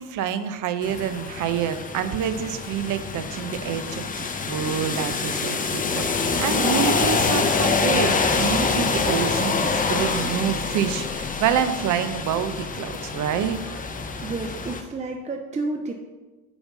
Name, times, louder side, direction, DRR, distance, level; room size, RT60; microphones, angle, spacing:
voice 1, 0.0-13.9, right 9 dB, 55° right, 11 dB, 0.7 m, -27 dB
sound 1, 0.8-14.8, left 4 dB, 20° left, 0.7 m, -26 dB
voice 2, 6.3-6.7 14.2-15.9, right 3 dB, 20° right, 3 dB, 0.6 m, -31 dB
5.1 x 4.0 x 5.9 m, 1.2 s
hypercardioid pair, 70°, 38 cm